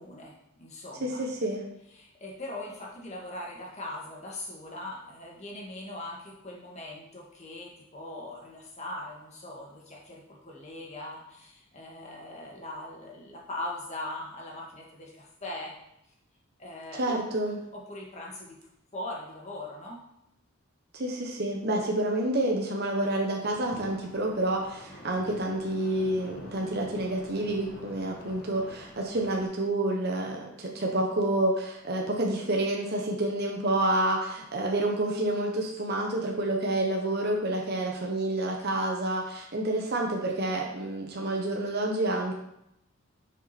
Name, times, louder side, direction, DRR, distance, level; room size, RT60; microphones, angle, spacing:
voice 1, 0.0-1.2 1.9-15.7 16.6-17.2 17.7-18.6 18.9-20.0, left 1 dB, 30° left, -3 dB, 2.0 m, -40 dB
voice 2, 1.0-1.6 17.0-17.6 20.9-42.3, right 1 dB, 50° right, 0 dB, 1.1 m, -29 dB
sound 1, 23.4-29.4, equal, 50° left, 1.6 m, -47 dB
9.9 x 5.4 x 4.3 m, 0.81 s
head